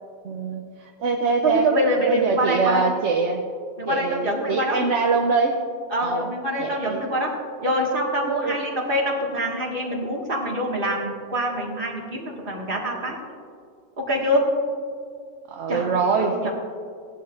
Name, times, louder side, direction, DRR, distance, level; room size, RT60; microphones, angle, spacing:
voice 1, 0.2-1.7 2.1-3.4 3.9-5.6 6.0-6.3 6.6-7.0 8.3-8.6 15.5-16.5, right 4 dB, 70° right, 2 dB, 1.1 m, -24 dB
voice 2, 1.4-2.8 3.8-4.8 5.9-7.3 7.6-13.2 14.0-14.4 15.7-15.9 16.2-16.5, equal, 45° right, -2 dB, 2.0 m, -25 dB
17.5 x 11.5 x 2.5 m, 2.3 s
omnidirectional pair, 1.3 m